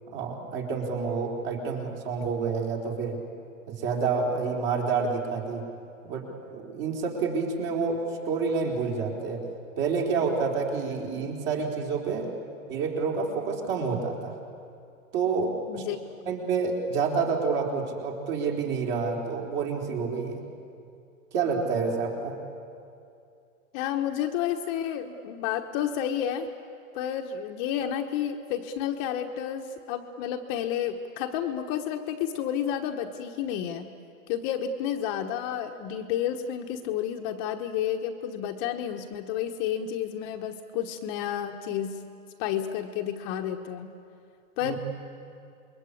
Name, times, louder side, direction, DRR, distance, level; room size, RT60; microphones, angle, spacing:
voice 1, 0.1-3.2 3.7-5.6 6.0-6.3 6.5-9.4 9.8-12.3 12.7-14.3 15.1-15.8 16.3-20.4 21.3-22.3 44.6-44.8, right 5 dB, 40° right, 0 dB, 4.4 m, -28 dB
voice 2, 15.7-16.3 23.7-26.5 26.9-33.9 34.3-42.0 42.4-43.9 44.6-44.7, left 9 dB, 30° left, 4 dB, 1.1 m, -31 dB
27.5 x 22.5 x 8.5 m, 2.5 s
hypercardioid pair, 145°, 42 cm